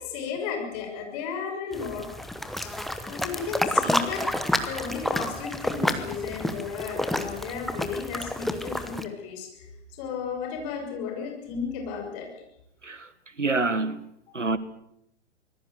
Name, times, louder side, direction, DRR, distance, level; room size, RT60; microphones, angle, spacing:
voice 1, 0.0-2.1 2.6-2.7 3.1-4.2 4.6-12.3 14.3-14.5, left 6 dB, 30° left, 6.2 m, -34 dB
sound 1, 1.7-9.0, left 1 dB, ahead, 0.9 m, -29 dB
voice 2, 13.4-14.1 14.3-14.6, right 3 dB, 85° right, 1.5 m, -26 dB
25.0 x 20.0 x 6.8 m
figure-of-eight pair, 115°, 36 cm